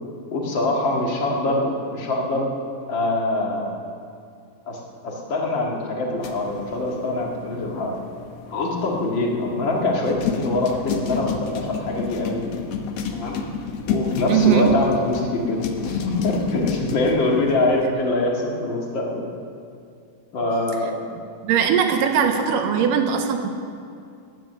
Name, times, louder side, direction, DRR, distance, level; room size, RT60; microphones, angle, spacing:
voice 1, 0.3-2.5 2.9-3.7 4.7-7.9 8.5-12.4 13.1-13.4 13.9-19.2 20.3-21.1, left 2 dB, 40° left, -1 dB, 2.0 m, -24 dB
sound 1, 6.2-17.9, left 5 dB, 70° left, 1.5 m, -30 dB
voice 2, 14.3-14.7 21.4-23.5, right 8 dB, 80° right, 5 dB, 2.4 m, -20 dB
15.5 x 10.5 x 6.8 m, 2.4 s
omnidirectional pair, 4.0 m